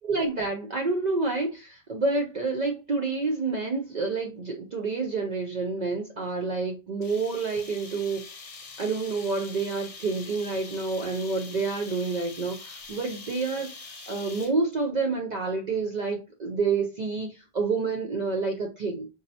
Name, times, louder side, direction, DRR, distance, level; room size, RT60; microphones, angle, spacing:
voice 1, 0.0-19.1, right 4 dB, 50° right, 2 dB, 0.6 m, -29 dB
sound 1, 7.0-14.7, left 4 dB, 45° left, 0.5 m, -44 dB
4.1 x 2.6 x 2.7 m, 0.28 s
omnidirectional pair, 1.1 m